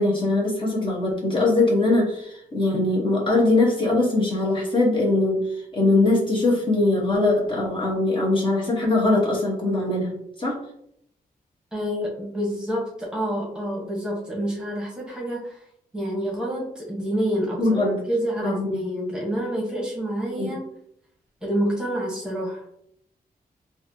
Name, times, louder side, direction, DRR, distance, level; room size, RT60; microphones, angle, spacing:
voice 1, 0.0-10.6 17.6-18.0 18.4-18.8 20.4-20.5, left 2 dB, 30° left, -4 dB, 1.1 m, -22 dB
voice 2, 11.7-15.6 15.9-20.6 21.4-22.6, equal, 5° right, -4 dB, 1.2 m, -28 dB
4.1 x 2.5 x 2.8 m, 0.73 s
wide cardioid pair, 105°, 16 cm